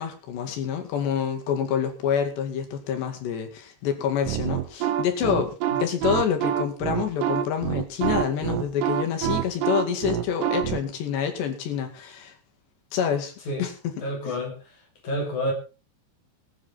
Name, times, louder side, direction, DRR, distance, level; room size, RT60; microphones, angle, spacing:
voice 1, 0.0-12.3 12.9-13.3 13.6-13.9 14.3-14.4, left 8 dB, 65° left, 4.2 m, -27 dB
sound 1, 4.3-10.8, right 11 dB, 90° right, 3.6 m, -26 dB
voice 2, 14.0-14.6 15.0-15.5, equal, 45° left, 3.9 m, -28 dB
19.5 x 9.9 x 4.2 m
omnidirectional pair, 5.6 m